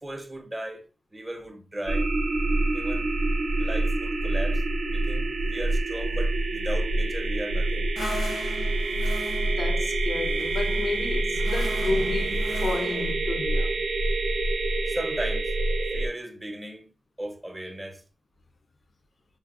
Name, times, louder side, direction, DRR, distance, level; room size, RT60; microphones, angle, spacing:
voice 1, 0.0-0.9 1.1-2.1 2.7-3.1 3.6-4.6 4.9-7.9 14.9-15.5 15.9-16.9 17.2-18.0, right 1 dB, 15° right, 0.5 m, -36 dB
sound 1, 1.9-16.1, right 2 dB, 80° right, 0.5 m, -26 dB
sound 2, 8.0-13.1, left 2 dB, 80° left, 0.8 m, -39 dB
voice 2, 9.4-13.8, left 3 dB, 45° left, 0.3 m, -31 dB
4.6 x 2.0 x 2.3 m
wide cardioid pair, 160°, 0 cm